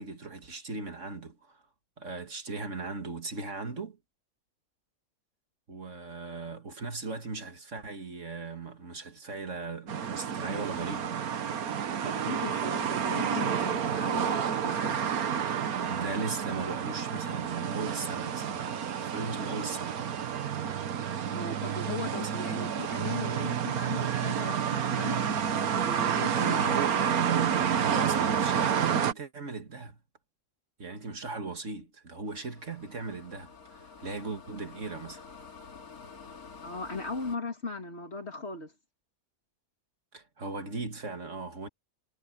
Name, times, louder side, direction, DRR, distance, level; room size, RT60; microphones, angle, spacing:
voice 1, 0.0-1.6 2.0-4.0 5.7-11.1 15.9-20.2 22.2-22.4 26.3-27.0 27.8-30.0 30.8-35.3 40.1-41.7, right 3 dB, 55° right, 2.4 m, -38 dB
sound 1, 9.9-29.1, right 8 dB, 90° right, 1.6 m, -29 dB
voice 2, 12.0-15.1 21.3-25.3 25.8-27.1 27.6-27.8 36.6-38.7, left 3 dB, 45° left, 2.8 m, -38 dB
sound 2, 32.3-37.4, left 5 dB, 90° left, 2.7 m, -49 dB
omnidirectional pair, 1.5 m